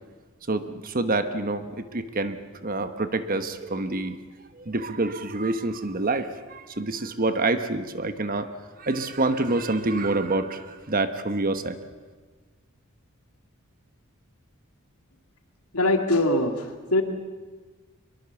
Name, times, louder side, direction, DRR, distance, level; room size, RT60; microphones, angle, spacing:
voice 1, 0.5-4.2 4.6-8.5 8.8-11.8, right 2 dB, 40° right, 10 dB, 1.2 m, -27 dB
voice 2, 15.7-17.0, left 1 dB, 90° left, 5 dB, 2.4 m, -22 dB
23.5 x 22.0 x 7.1 m, 1.4 s
head